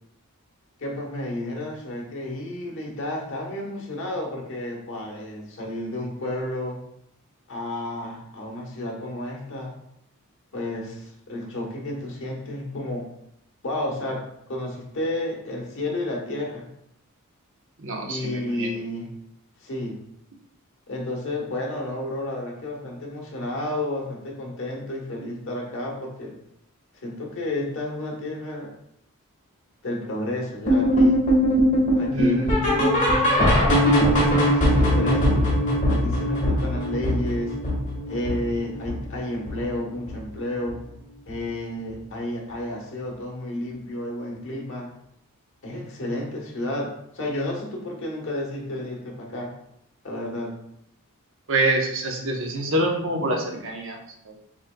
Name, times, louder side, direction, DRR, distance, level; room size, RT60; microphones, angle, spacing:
voice 1, 0.8-6.8 7.5-9.7 10.5-13.1 13.6-14.2 14.5-16.7 18.0-19.1 19.6-20.0 20.9-26.3 27.0-28.7 29.8-31.2 32.0-35.5 35.9-37.6 38.1-40.8 41.3-44.9 45.6-49.5 50.0-50.5, left 1 dB, 60° left, 0 dB, 1.1 m, -31 dB
voice 2, 17.8-18.7 32.1-32.6 51.5-54.0 54.2-54.3, right 1 dB, 60° right, 1 dB, 0.9 m, -26 dB
sound 1, 30.7-39.8 40.1-40.4 40.7-40.8 41.3-41.4 41.9-42.0, equal, 35° left, 1.4 m, -21 dB
7.4 x 3.2 x 2.3 m, 0.76 s
head